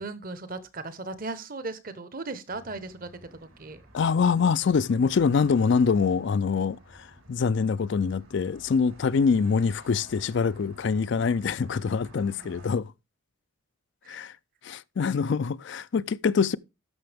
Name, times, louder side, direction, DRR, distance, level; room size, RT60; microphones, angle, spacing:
voice 1, 0.0-3.8 14.0-14.2, right 3 dB, 45° right, 0.9 m, -37 dB
sound 1, 2.5-12.7, right 1 dB, 80° right, 3.9 m, -52 dB
voice 2, 3.9-12.9 14.1-14.4 14.6-16.6, left 5 dB, 55° left, 0.4 m, -25 dB
13.5 x 6.0 x 3.4 m
head